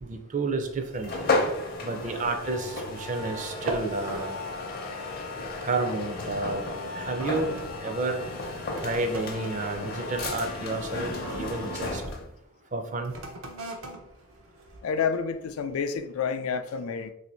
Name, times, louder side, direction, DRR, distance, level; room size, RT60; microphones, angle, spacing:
voice 1, 0.0-1.2 1.8-4.4 5.6-6.7 6.9-8.2 8.8-12.0 12.7-13.1, right 3 dB, 35° right, 0.4 m, -31 dB
sound 1, 0.6-3.2 3.5-4.0 4.4-4.7 5.4-5.7 6.4-12.2 13.0-15.3 15.9-16.0, right 1 dB, 80° right, 0.6 m, -43 dB
sound 2, 1.0-12.3, left 2 dB, 45° left, 0.6 m, -33 dB
voice 2, 14.8-17.1, left 6 dB, 85° left, 0.4 m, -29 dB
2.6 x 2.5 x 4.2 m
head